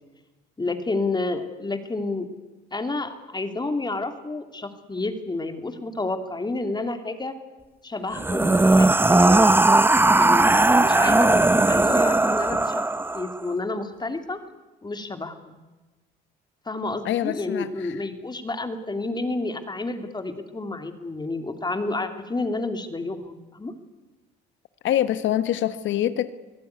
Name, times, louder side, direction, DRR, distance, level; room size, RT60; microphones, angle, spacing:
voice 1, 0.6-2.3 2.7-7.3 7.8-9.5 10.1-10.5 10.8-12.8 13.1-14.4 14.8-15.6 16.7-23.7, left 2 dB, 20° left, 7 dB, 2.9 m, -30 dB
sound 1, 8.1-13.4, right 2 dB, 10° right, 0.8 m, -18 dB
voice 2, 17.0-18.0 24.8-26.3, left 12 dB, 65° left, 13 dB, 1.4 m, -25 dB
24.0 x 16.0 x 9.6 m, 1.2 s
supercardioid pair, 75°, 21 cm